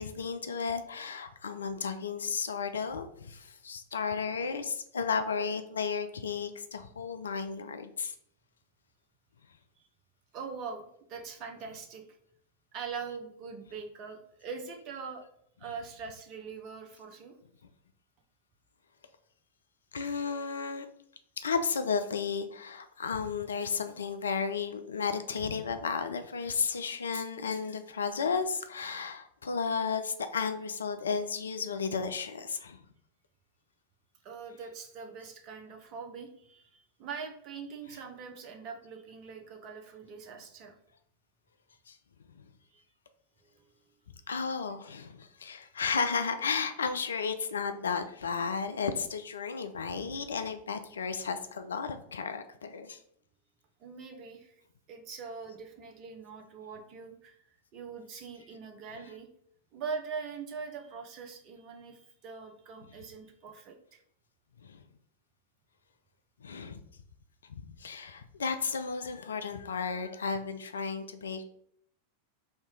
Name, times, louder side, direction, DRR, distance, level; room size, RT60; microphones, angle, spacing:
voice 1, 0.0-8.1 19.9-20.9 21.4-32.8 41.9-42.0 42.4-42.5 44.3-53.0 64.6-64.8 66.4-66.8 67.5-71.4, left 5 dB, 70° left, 9 dB, 0.4 m, -33 dB
voice 2, 10.3-10.8 11.1-12.0 12.7-15.2 15.6-17.3 34.2-40.8 42.7-42.8 43.5-43.7 53.8-54.5 54.9-57.4 57.7-59.3 59.7-64.0, right 5 dB, 40° right, 4 dB, 0.8 m, -42 dB
3.3 x 2.7 x 4.5 m, 0.68 s
figure-of-eight pair, 90°, 0 cm